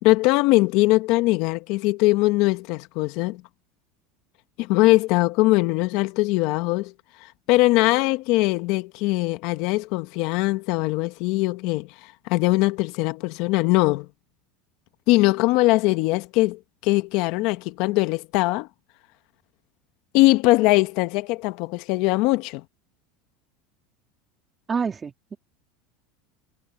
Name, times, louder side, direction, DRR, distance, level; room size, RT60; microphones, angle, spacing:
voice 1, 0.0-3.4 4.6-6.9 7.5-11.9 12.3-14.1 15.1-18.7 20.1-22.6, left 20 dB, 60° left, 1.3 m, -21 dB
voice 2, 24.7-25.4, right 5 dB, 20° right, 3.2 m, -27 dB
supercardioid pair, 125°, 0 cm